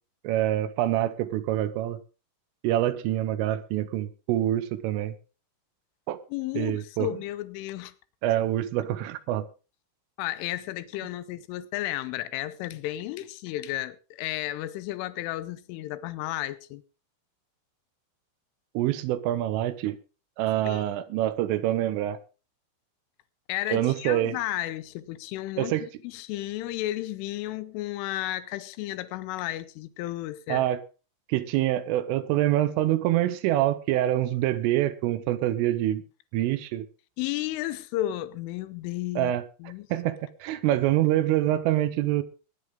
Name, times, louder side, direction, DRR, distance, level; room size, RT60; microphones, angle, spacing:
voice 1, 0.3-2.0 2.6-5.1 6.1-6.2 6.6-7.1 8.2-9.5 18.8-20.0 20.4-22.2 23.7-24.4 25.6-25.9 30.5-30.8 31.3-36.0 36.3-36.9 39.2-39.4 39.9-42.2, right 13 dB, 80° right, 3.4 m, -25 dB
voice 2, 6.3-7.9 10.2-16.8 20.7-20.8 23.5-25.8 26.0-30.6 37.2-39.3 39.6-39.9, left 15 dB, 80° left, 3.3 m, -33 dB
20.5 x 9.9 x 3.7 m
omnidirectional pair, 5.8 m